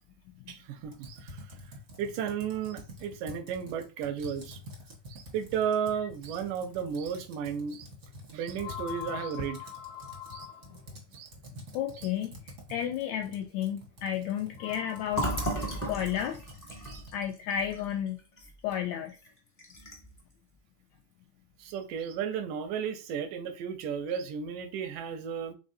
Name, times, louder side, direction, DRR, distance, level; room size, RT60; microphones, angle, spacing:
voice 1, 0.5-1.4 2.0-4.6 5.1-7.9 8.3-9.7 10.3-10.5 11.1-11.3 12.0-12.1 16.9-17.0 21.6-25.5, right 7 dB, 85° right, 2.2 m, -34 dB
Computer keyboard, 0.8-17.3, equal, 55° right, 0.8 m, -48 dB
sound 1, 8.6-11.0 12.8-12.9 14.5-15.3, left 10 dB, 65° left, 1.6 m, -43 dB
voice 2, 11.7-12.3 12.7-15.4 15.9-16.4 17.1-18.2 18.6-19.1, left 10 dB, 85° left, 1.6 m, -32 dB
Fill (with liquid), 15.1-18.8 19.1-19.3 19.6-20.2, right 1 dB, 20° left, 0.5 m, -35 dB
5.3 x 3.8 x 2.6 m
omnidirectional pair, 3.7 m